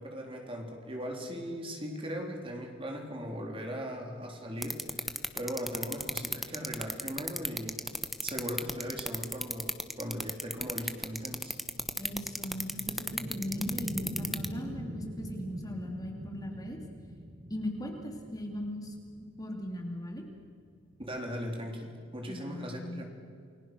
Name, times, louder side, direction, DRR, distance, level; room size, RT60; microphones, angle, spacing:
voice 1, 0.0-11.6 21.0-23.0, equal, 25° right, 2 dB, 3.7 m, -39 dB
sound 1, 4.6-14.5, equal, ahead, 1.1 m, -32 dB
sound 2, 10.4-21.1, equal, 40° right, 1.6 m, -43 dB
voice 2, 12.0-16.8 17.5-19.0 19.4-20.2 22.3-23.0, left 1 dB, 20° left, 2 dB, 2.7 m, -38 dB
29.5 x 21.0 x 6.3 m, 2.2 s
head